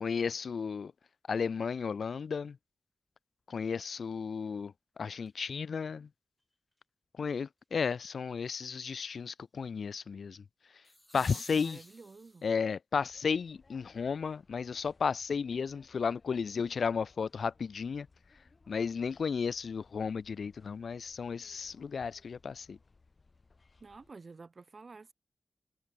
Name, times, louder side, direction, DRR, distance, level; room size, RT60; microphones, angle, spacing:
voice 1, 0.0-0.9 1.3-2.6 3.5-4.7 5.0-6.1 7.2-10.4 11.1-11.8 12.4-18.1 18.7-22.8, left 6 dB, 75° left, 0.5 m, -33 dB
sound 1, 5.2-5.3 10.8-12.6 14.8-14.9, left 1 dB, 5° left, 1.2 m, -51 dB
voice 2, 11.1-12.5 23.8-25.1, right 4 dB, 45° right, 2.7 m, -51 dB
sound 2, 13.0-24.1, left 3 dB, 45° left, 3.8 m, -64 dB
wide cardioid pair, 105°, 0 cm